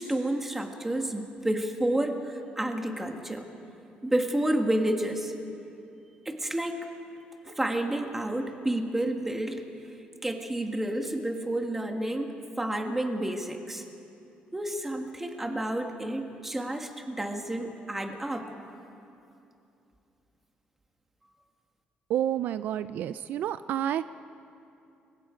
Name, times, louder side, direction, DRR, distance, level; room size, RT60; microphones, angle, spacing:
voice 1, 0.0-3.4 4.0-5.3 6.2-6.8 7.4-9.6 10.2-13.8 14.5-18.5, right 1 dB, 10° right, 4 dB, 1.7 m, -30 dB
voice 2, 22.1-24.0, right 11 dB, 65° right, 13 dB, 0.4 m, -29 dB
29.5 x 23.5 x 5.1 m, 2.7 s
cardioid pair, 165°, 3 cm